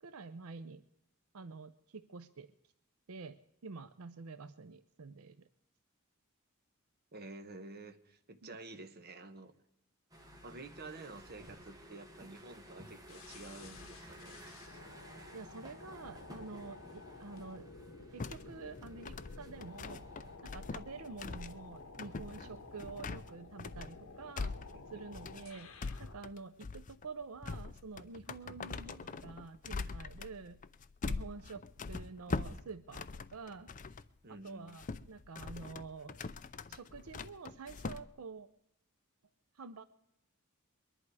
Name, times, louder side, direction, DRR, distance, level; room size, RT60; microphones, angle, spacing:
voice 1, 0.0-0.8 1.3-2.5 3.1-5.4 8.4-8.6 15.3-17.7 18.1-20.0 20.5-24.5 24.9-25.7 26.0-30.6 31.0-33.7 34.3-36.2 36.7-38.5 39.5-39.8, right 4 dB, 85° right, 12 dB, 0.6 m, -48 dB
voice 2, 7.1-9.5 10.4-14.4 22.4-22.6 24.7-24.9 34.2-34.7, right 2 dB, 45° right, 8 dB, 1.2 m, -50 dB
sound 1, 10.1-20.4, equal, 20° right, 2.1 m, -54 dB
sound 2, 13.1-26.2, left 3 dB, 65° left, 1.4 m, -53 dB
sound 3, 18.2-34.1 34.5-38.0, left 4 dB, 35° left, 0.5 m, -43 dB
22.5 x 11.0 x 4.8 m, 0.79 s
head